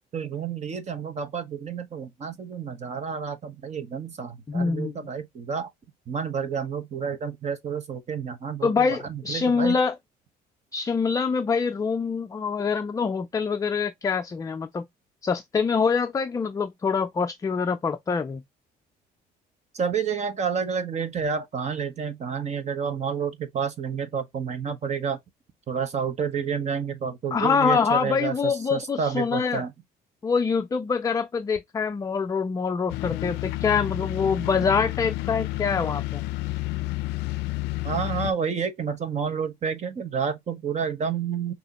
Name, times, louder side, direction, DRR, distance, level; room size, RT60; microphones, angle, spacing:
voice 1, 0.1-5.7 6.1-9.8 19.7-25.2 25.7-29.7 37.8-41.5, right 6 dB, 40° right, 1.1 m, -30 dB
voice 2, 4.5-5.0 8.6-10.0 10.7-14.9 15.2-18.4 27.3-29.6 30.2-36.2, left 5 dB, 20° left, 0.4 m, -25 dB
sound 1, 32.9-38.3, left 18 dB, 90° left, 0.4 m, -30 dB
6.1 x 2.9 x 2.9 m
cardioid pair, 110°, 17 cm